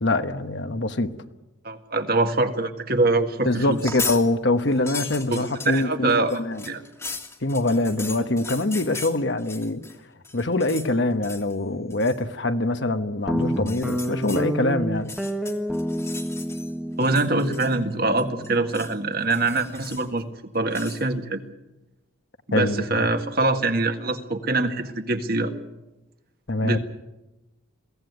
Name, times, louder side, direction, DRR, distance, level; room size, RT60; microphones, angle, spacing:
voice 1, 0.0-1.1 3.4-6.6 7.4-9.8 10.3-15.1 22.5-23.1 26.5-26.8, left 2 dB, 55° left, 9 dB, 1.2 m, -24 dB
voice 2, 1.6-3.8 5.3-6.8 17.0-21.4 22.5-25.5 26.6-26.8, right 2 dB, 45° right, 6 dB, 1.8 m, -24 dB
sound 1, 3.7-4.2 4.6-10.0 10.2-10.9 11.2-11.5 11.9-12.2 13.5-14.4 15.0-16.7 17.0-17.9 18.2-19.0 19.3-20.2 20.7-21.0, left 4 dB, 15° left, 1.8 m, -37 dB
Guitar, 13.3-20.0, equal, ahead, 1.1 m, -30 dB
22.5 x 16.5 x 9.5 m, 1.0 s
head